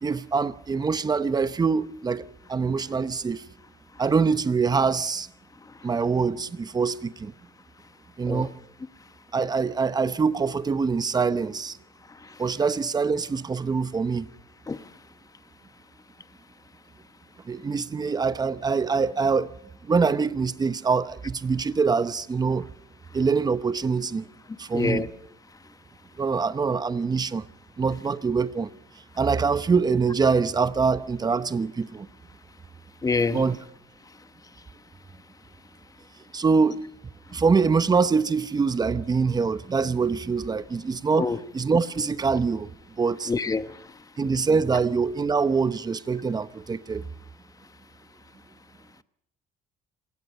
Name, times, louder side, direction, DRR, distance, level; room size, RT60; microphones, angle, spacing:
voice 1, 0.0-3.4 4.0-5.3 5.8-7.3 8.2-8.5 9.3-11.8 12.4-14.3 17.5-19.5 19.8-22.7 23.1-24.2 24.6-25.1 26.2-27.5 27.8-28.7 29.2-32.1 33.3-33.6 36.3-36.8 37.3-41.3 41.5-42.7 43.0-43.3 44.2-47.0, right 5 dB, 25° right, 0.9 m, -24 dB
voice 2, 24.7-25.1 33.0-33.4 41.2-41.4 43.3-43.7, left 4 dB, 20° left, 1.0 m, -25 dB
27.5 x 17.0 x 5.6 m
cardioid pair, 110°, 17 cm